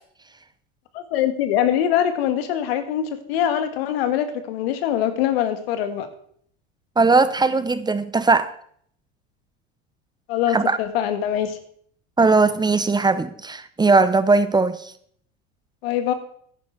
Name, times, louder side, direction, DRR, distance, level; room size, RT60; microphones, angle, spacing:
voice 1, 0.9-6.1 10.3-11.6 15.8-16.1, left 10 dB, 80° left, 10 dB, 1.5 m, -23 dB
voice 2, 7.0-8.5 10.5-10.8 12.2-14.9, right 3 dB, 15° right, 13 dB, 0.8 m, -19 dB
11.0 x 9.5 x 4.6 m, 0.62 s
supercardioid pair, 95°, 30 cm